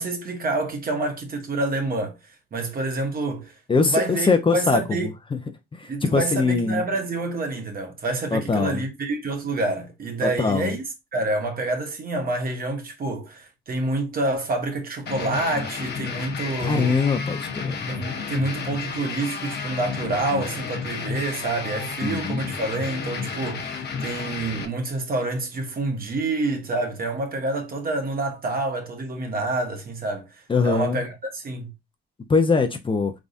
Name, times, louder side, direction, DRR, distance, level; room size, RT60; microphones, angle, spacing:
voice 1, 0.0-2.2 2.5-3.6 3.8-5.1 5.9-10.8 11.1-17.0 17.9-31.7, right 2 dB, 50° right, 1.4 m, -27 dB
voice 2, 3.7-4.8 5.3-5.4 5.8-6.8 8.3-8.8 10.2-10.7 16.6-17.9 22.0-22.4 30.5-31.0 32.3-33.1, left 4 dB, 25° left, 0.7 m, -22 dB
sound 1, 15.1-24.7, left 5 dB, 55° left, 1.0 m, -32 dB
3.8 x 3.6 x 2.6 m
cardioid pair, 90°, 20 cm